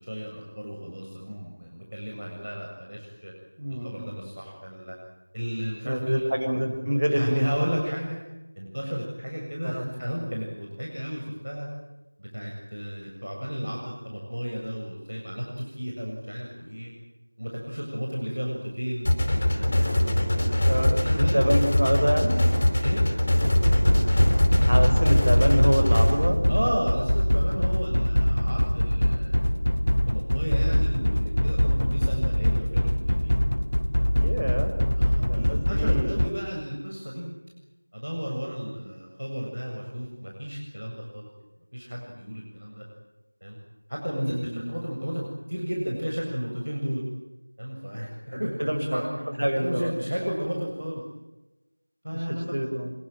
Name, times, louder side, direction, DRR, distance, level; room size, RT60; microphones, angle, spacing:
voice 1, 0.0-3.3 3.7-5.0 5.3-6.3 7.1-8.2 8.6-11.7 12.2-16.9 17.4-19.1 19.6-20.6 21.0-21.4 22.8-23.0 26.5-29.5 29.9-33.3 34.0-34.5 34.9-37.3 37.9-41.3 41.7-42.8 43.4-43.6 43.9-47.0 47.6-49.1 49.5-51.0 52.0-52.5, equal, 70° right, -1 dB, 7.4 m, -33 dB
voice 2, 3.6-4.0 5.8-7.4 9.6-9.9 20.7-22.4 24.6-26.4 34.2-34.7 35.2-36.2 44.2-44.7 48.3-49.0 49.4-49.9 52.1-52.9, equal, 55° right, 5 dB, 5.8 m, -26 dB
sound 1, 19.0-26.1, left 1 dB, 25° left, 4.8 m, -23 dB
sound 2, 23.4-36.3, equal, 65° left, 1.5 m, -23 dB
26.0 x 22.0 x 9.1 m, 1.0 s
figure-of-eight pair, 175°, 0 cm